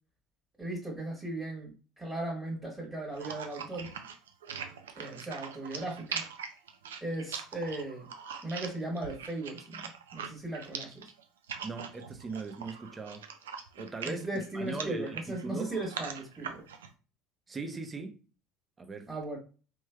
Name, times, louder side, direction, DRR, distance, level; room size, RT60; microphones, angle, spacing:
voice 1, 0.6-3.9 5.0-6.2 7.0-8.1 8.4-9.8 10.1-11.1 14.0-16.6 19.1-19.4, right 2 dB, 10° right, 1.5 m, -37 dB
sound 1, 3.1-16.9, right 7 dB, 85° right, 0.4 m, -42 dB
voice 2, 11.6-13.2 13.8-14.3 14.5-15.7 17.5-18.2 18.8-19.1, right 3 dB, 25° right, 0.6 m, -39 dB
3.2 x 3.1 x 2.2 m
hypercardioid pair, 70°, 0 cm